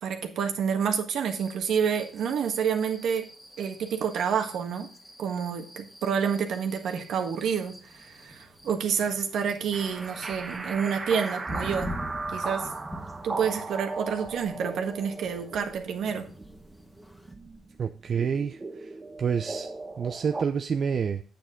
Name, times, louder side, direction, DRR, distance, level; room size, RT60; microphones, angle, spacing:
voice 1, 0.0-3.2 3.6-4.9 5.2-11.9 12.3-12.7 13.2-16.3, right 7 dB, 70° right, 5 dB, 1.5 m, -28 dB
sound 1, 1.3-17.3, equal, 5° left, 1.6 m, -45 dB
sound 2, 9.7-20.4, right 3 dB, 25° right, 1.0 m, -37 dB
voice 2, 17.8-19.7 20.0-21.2, right 6 dB, 50° right, 7 dB, 0.5 m, -28 dB
8.6 x 7.9 x 3.7 m, 0.39 s
cardioid pair, 90°, 0 cm